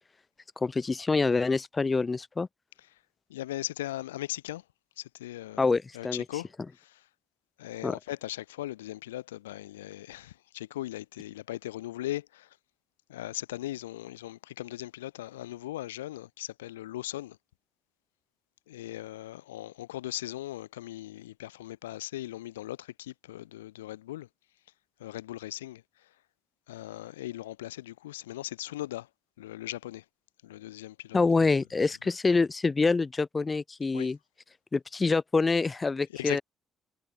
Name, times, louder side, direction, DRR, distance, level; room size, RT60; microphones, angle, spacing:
voice 1, 0.6-2.5 5.6-6.2 7.8-8.0 31.1-34.2 34.7-36.4, left 4 dB, 30° left, 0.8 m, -26 dB
voice 2, 3.3-4.6 5.0-6.5 6.7-7.0 7.6-12.5 13.1-17.4 18.7-24.3 25.0-25.8 26.7-29.1 29.4-30.0 30.4-31.2 33.9-34.1 36.1-36.4, left 15 dB, 85° left, 1.9 m, -39 dB
hypercardioid pair, 45°, 0 cm